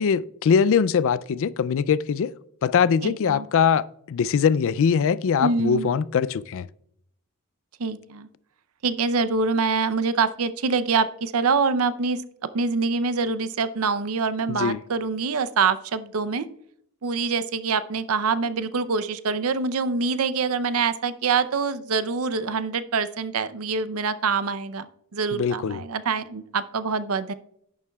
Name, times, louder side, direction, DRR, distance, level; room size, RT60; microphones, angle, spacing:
voice 1, 0.0-2.3 2.6-6.7 14.5-14.8 25.3-25.8, left 6 dB, 60° left, 0.3 m, -22 dB
voice 2, 3.0-3.5 5.4-5.9 7.8-8.3 8.8-12.2 12.5-16.5 17.0-27.3, right 4 dB, 65° right, 0.6 m, -25 dB
11.0 x 10.0 x 2.3 m
head